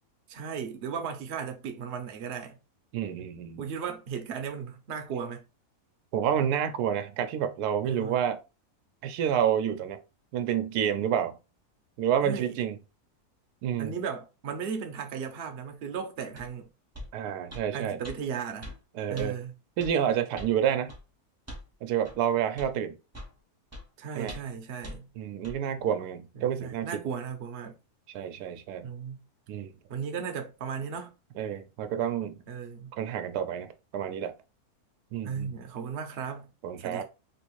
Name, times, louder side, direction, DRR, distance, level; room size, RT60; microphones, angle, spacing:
voice 1, 0.3-2.6 3.6-5.4 7.8-8.2 12.2-12.5 13.8-16.7 17.7-18.7 19.1-19.5 24.0-25.1 26.4-27.8 28.8-29.2 29.9-31.2 32.5-32.9 35.2-36.5 36.8-37.0, right 6 dB, 55° right, 0.8 m, -36 dB
voice 2, 2.9-3.7 6.1-8.4 9.0-10.0 10.3-11.4 12.0-12.8 13.6-13.9 17.1-18.0 18.9-19.4 19.8-20.9 21.8-23.0 24.1-24.4 25.2-26.9 28.1-28.9 29.5-29.7 31.4-32.4 32.9-34.3 35.1-35.5 36.6-37.0, right 9 dB, 90° right, 1.1 m, -29 dB
sound 1, 16.4-16.5 16.9-17.1 17.5-17.7 18.0-18.2 18.6-18.8 19.2-19.3 19.8-19.9 20.4-20.5 20.9-21.0 21.5-21.7 22.0-22.2 22.6-22.7 23.1-23.3 23.7-23.8 24.3-24.5 24.8-25.0 25.4-25.6, left 1 dB, 15° right, 0.5 m, -42 dB
3.4 x 2.6 x 3.0 m
omnidirectional pair, 1.6 m